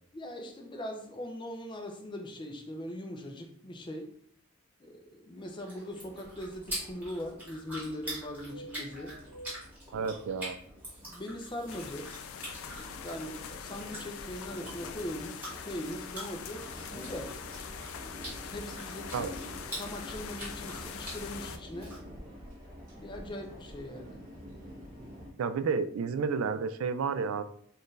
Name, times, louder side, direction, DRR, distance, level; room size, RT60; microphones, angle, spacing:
voice 1, 0.1-4.1 4.8-9.1 9.9-10.1 11.0-12.1 13.0-17.4 18.5-19.3 19.8-22.0 22.9-24.2, left 1 dB, 20° left, 4 dB, 0.5 m, -41 dB
sound 1, 5.4-22.0, right 1 dB, 10° right, 1.5 m, -45 dB
sound 2, 5.9-25.3, equal, 40° right, 1.1 m, -48 dB
voice 2, 9.9-10.6 19.1-19.3 25.4-27.4, right 5 dB, 80° right, 12 dB, 0.3 m, -31 dB
sound 3, 11.7-21.6, left 7 dB, 85° left, 0.4 m, -43 dB
4.3 x 2.5 x 3.2 m, 0.63 s
head